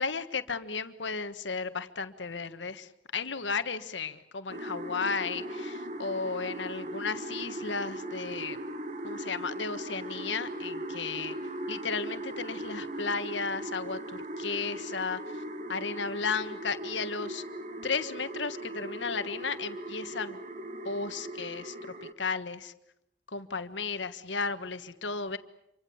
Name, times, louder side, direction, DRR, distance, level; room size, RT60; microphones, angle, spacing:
voice 1, 0.0-8.6 9.0-11.3 11.7-15.4 15.7-17.4 17.8-20.4 20.8-21.7 22.0-22.7 23.3-25.4, left 4 dB, 80° left, 11 dB, 1.5 m, -34 dB
sound 1, 4.5-22.1, right 1 dB, 40° right, 1.7 m, -39 dB
27.0 x 24.5 x 7.2 m, 0.83 s
head